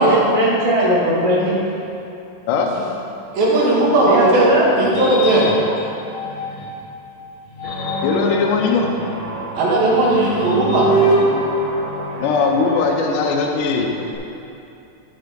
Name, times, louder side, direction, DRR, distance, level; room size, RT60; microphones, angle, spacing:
voice 1, 0.0-1.5 4.1-4.7, equal, 30° left, -9 dB, 0.5 m, -18 dB
voice 2, 3.3-4.5 4.8-5.5 9.6-10.9, right 2 dB, 80° right, -6 dB, 3.6 m, -16 dB
sound 1, 3.8-6.9 7.4-12.6, right 1 dB, 90° left, 0.9 m, -25 dB
Guitar, 7.6-14.2, equal, 25° right, 1.4 m, -32 dB
voice 3, 8.0-8.9 12.2-13.9, left 4 dB, 75° left, 1 dB, 2.2 m, -19 dB
13.0 x 4.9 x 5.1 m, 2.7 s
omnidirectional pair, 4.1 m